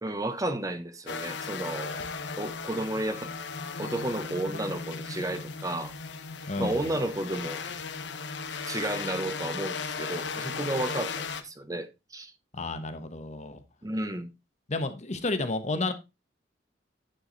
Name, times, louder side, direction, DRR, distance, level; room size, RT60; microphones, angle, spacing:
voice 1, 0.0-2.0 2.4-3.3 3.8-5.9 6.6-7.6 8.7-12.3 13.8-14.3, right 1 dB, 20° right, 0.9 m, -32 dB
sound 1, 1.1-11.4, left 5 dB, 75° left, 0.9 m, -36 dB
voice 2, 6.5-7.0 12.5-13.6 14.7-15.9, left 2 dB, 40° left, 0.9 m, -31 dB
10.0 x 4.8 x 3.8 m
head